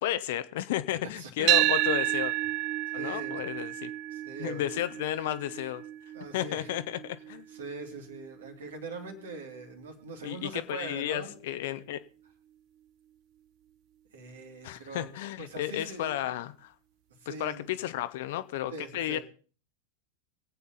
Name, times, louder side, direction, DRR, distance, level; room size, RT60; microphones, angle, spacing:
voice 1, 0.0-2.3 2.9-3.9 4.4-5.8 6.3-7.5 10.2-12.0 14.6-16.7 17.3-19.2, left 13 dB, 60° left, 0.9 m, -33 dB
voice 2, 1.1-1.5 2.9-3.4 4.1-4.6 6.1-6.7 7.5-11.3 14.1-15.1 15.4-16.3 17.2-17.7 18.7-19.2, right 3 dB, 70° right, 3.0 m, -42 dB
sound 1, 1.5-9.7, right 15 dB, 45° right, 0.5 m, -31 dB
23.5 x 8.5 x 4.1 m
figure-of-eight pair, 85°, 0 cm